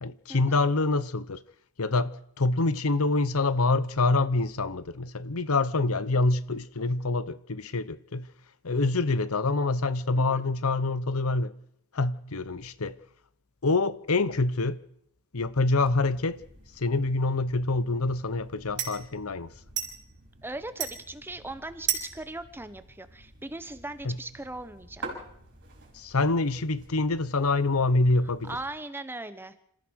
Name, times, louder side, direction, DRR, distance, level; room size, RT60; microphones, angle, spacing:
voice 1, 0.0-1.4 1.8-8.3 8.6-11.5 11.9-13.0 13.6-14.8 15.3-16.4 16.8-19.5 24.0-24.2 25.9-28.6, left 3 dB, 75° left, 0.9 m, -26 dB
sound 1, 15.8-28.6, right 8 dB, 50° right, 5.5 m, -41 dB
voice 2, 20.4-25.2 28.4-29.5, right 2 dB, 10° right, 1.1 m, -39 dB
27.5 x 14.5 x 6.5 m
head